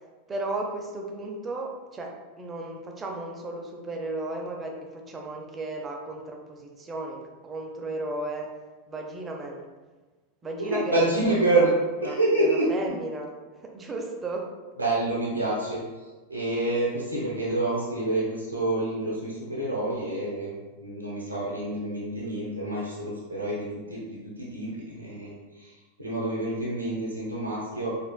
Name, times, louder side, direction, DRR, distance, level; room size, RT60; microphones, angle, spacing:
voice 1, 0.3-8.5 8.9-9.7 10.4-11.7 12.0-12.1 12.4-13.3 13.6-14.5, right 2 dB, 20° right, 1 dB, 0.6 m, -34 dB
voice 2, 10.6-11.7 12.0-12.7 14.8-27.9, right 2 dB, 85° right, -6 dB, 0.8 m, -28 dB
4.3 x 3.3 x 2.2 m, 1.3 s
figure-of-eight pair, 90°, 0 cm